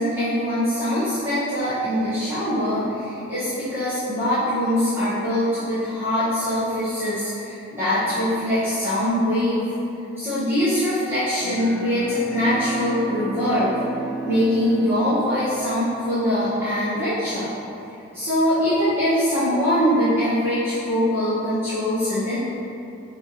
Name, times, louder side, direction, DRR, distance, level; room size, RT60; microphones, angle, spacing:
voice 1, 0.0-9.7 10.2-13.7 14.2-17.5 18.1-22.4, equal, 10° right, -17 dB, 1.0 m, -23 dB
Bowed string instrument, 11.4-16.3, right 3 dB, 5° left, 0.3 m, -34 dB
5.8 x 2.5 x 2.7 m, 2.8 s
head